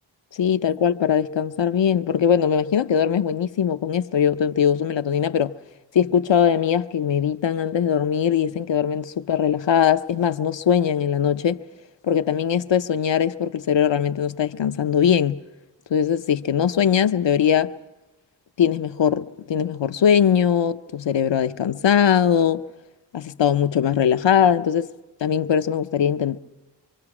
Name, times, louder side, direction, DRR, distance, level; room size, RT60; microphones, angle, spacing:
voice 1, 0.3-5.5 5.9-11.6 12.0-15.4 15.9-17.7 18.6-22.6 23.1-24.9 25.2-26.4, left 8 dB, 85° left, 0.6 m, -21 dB
25.0 x 24.5 x 4.9 m
wide cardioid pair, 55°, 43 cm